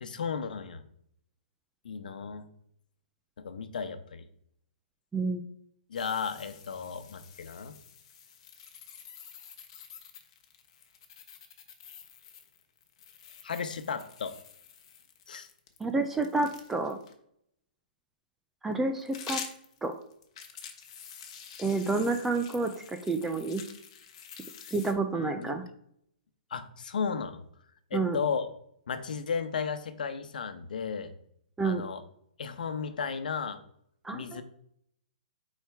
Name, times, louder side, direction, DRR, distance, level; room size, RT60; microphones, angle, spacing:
voice 1, 0.0-0.8 1.8-2.5 3.4-4.2 5.9-7.7 13.4-14.3 15.3-15.5 25.1-25.6 26.5-27.4 27.9-28.5 28.9-31.1 31.6-32.0 32.4-33.6 34.1-34.4, left 6 dB, 65° left, 9 dB, 0.9 m, -34 dB
sound 1, 5.9-17.1 18.7-24.9, left 7 dB, 35° left, 1.0 m, -47 dB
voice 2, 15.8-17.0 18.6-19.4 19.8-20.0 21.6-22.7 23.1-23.6 24.7-25.6 27.9-28.2 31.6-31.8 34.0-34.4, right 3 dB, 5° right, 6 dB, 0.3 m, -29 dB
9.0 x 4.4 x 3.5 m, 0.69 s
hypercardioid pair, 175°, 5 cm